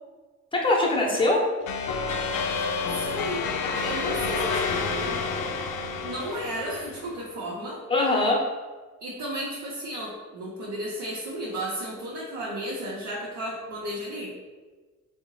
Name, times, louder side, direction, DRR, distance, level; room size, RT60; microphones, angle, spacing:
voice 1, 0.5-1.4 7.9-8.4, left 2 dB, 15° left, -1 dB, 0.7 m, -22 dB
voice 2, 1.1-1.4 2.5-3.5 3.8-5.2 6.0-7.8 9.0-14.4, right 1 dB, 75° right, -6 dB, 0.7 m, -34 dB
sound 1, 1.7-7.1, left 4 dB, 80° left, 0.4 m, -29 dB
3.6 x 2.1 x 3.0 m, 1.3 s
cardioid pair, 90°, 30 cm